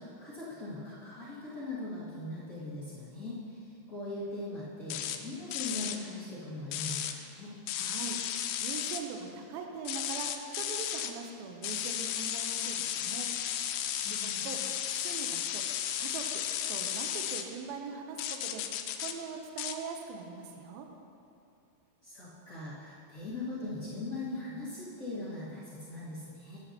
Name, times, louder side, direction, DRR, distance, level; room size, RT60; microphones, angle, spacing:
voice 1, 0.0-7.5 14.0-14.4 22.0-26.6, left 2 dB, 65° left, -10 dB, 0.8 m, -40 dB
sound 1, 4.9-5.2 5.5-6.0 6.7-7.1 7.7-9.0 9.8-11.1 11.6-17.4 18.2-19.1 19.6-19.8, left 10 dB, 80° left, 2.3 m, -34 dB
voice 2, 7.8-10.3 10.6-13.3 13.9-14.6 14.9-15.6 16.0-16.4 16.7-18.6 19.0-20.9, right 6 dB, 80° right, 3 dB, 2.5 m, -42 dB
13.0 x 9.4 x 2.8 m, 2.7 s
omnidirectional pair, 4.5 m